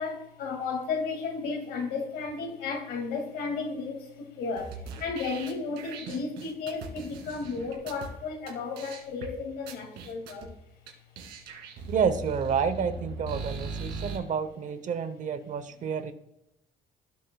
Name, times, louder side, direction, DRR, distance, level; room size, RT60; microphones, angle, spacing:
voice 1, 0.0-10.5, left 4 dB, 70° left, 2.2 m, -34 dB
sound 1, 4.6-8.1 8.5-8.6 8.8-9.3 9.7-10.5 10.9-11.0 11.2-14.2, right 3 dB, 80° right, 2.4 m, -39 dB
voice 2, 11.9-16.1, right 6 dB, 50° right, 0.8 m, -29 dB
16.5 x 6.4 x 2.3 m
cardioid pair, 110°, 17 cm